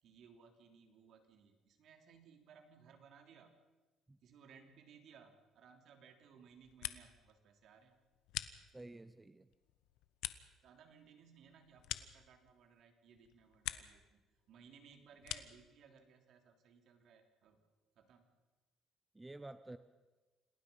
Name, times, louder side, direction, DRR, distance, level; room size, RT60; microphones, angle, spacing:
voice 1, 0.0-3.5 4.2-8.0 10.6-17.6 17.9-18.3, right 6 dB, 60° right, 5 dB, 3.2 m, -62 dB
sound 1, 6.5-7.3 7.6-9.1 9.5-12.8 13.1-14.1 14.4-15.7, left 14 dB, 85° left, 1.0 m, -47 dB
voice 2, 8.7-9.5 19.1-19.8, right 2 dB, 10° right, 12 dB, 0.7 m, -51 dB
28.0 x 19.0 x 5.5 m, 1.2 s
cardioid pair, 135°, 0 cm